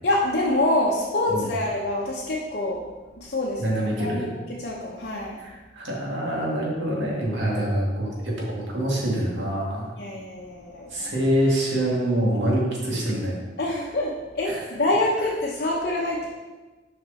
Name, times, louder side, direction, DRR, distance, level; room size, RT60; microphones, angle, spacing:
voice 1, 0.0-2.8 3.2-4.3 4.6-5.4 10.0-11.1 13.6-16.3, left 1 dB, 55° left, -4 dB, 0.9 m, -26 dB
voice 2, 3.6-4.3 5.4-9.9 10.9-13.4 14.5-14.6, right 1 dB, 80° right, -3 dB, 2.0 m, -25 dB
6.7 x 5.2 x 4.1 m, 1.2 s
head